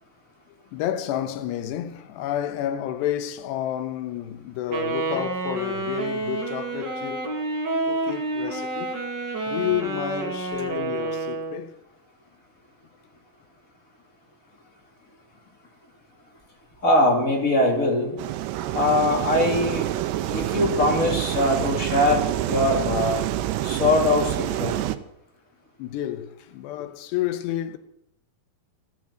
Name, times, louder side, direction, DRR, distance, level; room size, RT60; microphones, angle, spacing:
voice 1, 0.7-7.2 7.9-9.0 9.5-11.8 23.7-23.8 25.8-27.8, left 12 dB, 80° left, 3.1 m, -30 dB
Wind instrument woodwind instrument, 4.7-11.7, right 3 dB, 35° right, 2.1 m, -29 dB
voice 2, 16.8-18.2 18.7-19.9 20.3-23.2 23.6-24.7, left 1 dB, 20° left, 3.0 m, -22 dB
sound 1, 18.2-25.0, right 13 dB, 85° right, 2.9 m, -27 dB
14.0 x 9.2 x 9.0 m
omnidirectional pair, 4.9 m